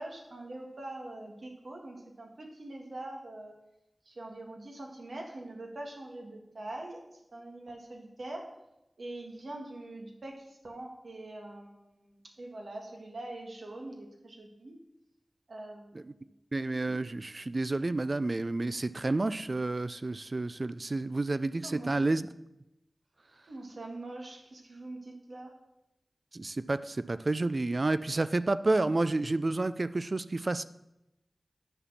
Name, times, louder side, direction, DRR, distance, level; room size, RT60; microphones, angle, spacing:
voice 1, 0.0-3.5 4.0-8.5 9.0-14.8 15.5-16.1 21.6-22.0 23.5-25.5, right 2 dB, 75° right, 1 dB, 1.7 m, -43 dB
voice 2, 16.5-22.3 26.3-30.6, right 2 dB, 50° right, 14 dB, 0.4 m, -30 dB
9.8 x 4.3 x 7.2 m, 0.90 s
wide cardioid pair, 60°, 0 cm